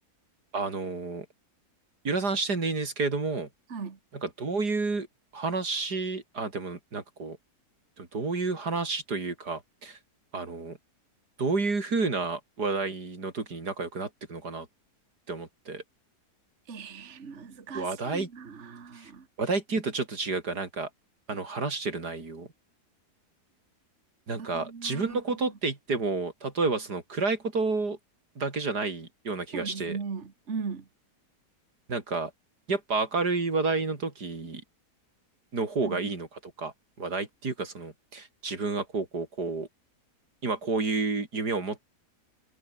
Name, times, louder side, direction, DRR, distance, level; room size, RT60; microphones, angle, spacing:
voice 1, 0.5-1.3 2.0-3.5 4.1-5.1 5.3-7.4 8.0-10.0 10.3-10.8 11.4-14.7 15.3-15.8 17.7-18.3 19.0-19.1 19.4-20.9 21.3-22.5 24.3-28.0 28.4-30.0 31.9-32.3 32.7-34.6 35.5-36.7 37.0-39.7 40.4-41.8, right 3 dB, 75° right, 4.2 m, -30 dB
voice 2, 16.7-19.3 24.4-25.2 29.5-30.8 35.8-36.0, right 5 dB, 45° right, 2.0 m, -38 dB
omnidirectional pair, 1.7 m